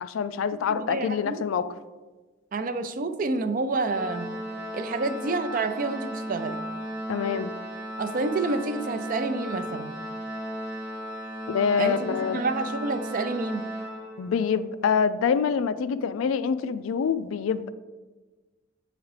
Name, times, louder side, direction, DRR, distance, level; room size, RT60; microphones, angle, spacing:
voice 1, 0.0-1.7 7.1-7.5 11.5-12.4 14.2-17.7, left 6 dB, 85° left, 13 dB, 0.3 m, -26 dB
voice 2, 0.7-1.5 2.5-4.3 4.7-6.6 8.0-9.9 11.8-13.6, right 3 dB, 45° right, 10 dB, 0.4 m, -29 dB
Organ, 3.8-14.6, equal, 5° right, 1.1 m, -35 dB
7.9 x 4.8 x 3.2 m, 1.3 s
head